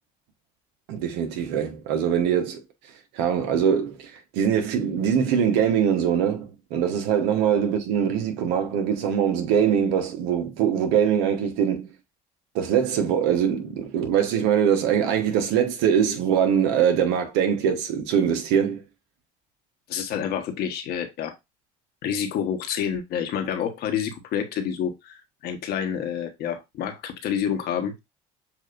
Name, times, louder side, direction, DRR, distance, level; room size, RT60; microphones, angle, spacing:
voice 1, 0.9-2.6 3.1-11.9 12.5-18.8, right 8 dB, 85° right, 1.1 m, -23 dB
voice 2, 19.9-21.3 22.0-28.0, left 8 dB, 70° left, 1.2 m, -28 dB
7.2 x 2.7 x 2.5 m
supercardioid pair, 80°, 17 cm